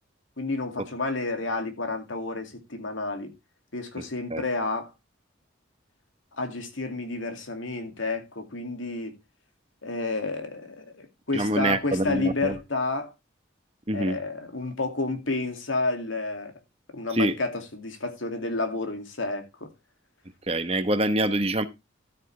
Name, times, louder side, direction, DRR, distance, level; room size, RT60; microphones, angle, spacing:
voice 1, 0.4-3.3 3.7-4.9 6.3-9.1 9.8-13.1 13.9-16.5 16.9-19.7, left 3 dB, 80° left, 2.4 m, -30 dB
voice 2, 11.3-12.6 13.9-14.2 17.1-17.4 20.5-21.6, right 1 dB, 30° right, 1.1 m, -25 dB
12.5 x 9.2 x 3.3 m
head